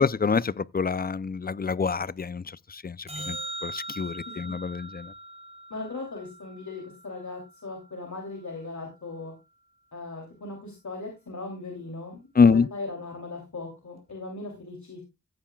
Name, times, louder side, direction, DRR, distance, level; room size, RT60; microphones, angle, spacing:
voice 1, 0.0-3.4 3.6-5.1 12.4-12.7, left 5 dB, 30° left, 0.5 m, -25 dB
sound 1, 3.1-7.5 14.1-14.2, right 1 dB, 20° right, 3.5 m, -40 dB
voice 2, 5.7-9.3 9.9-15.0, left 3 dB, 70° left, 3.0 m, -38 dB
14.5 x 8.8 x 2.3 m
wide cardioid pair, 50°, 30 cm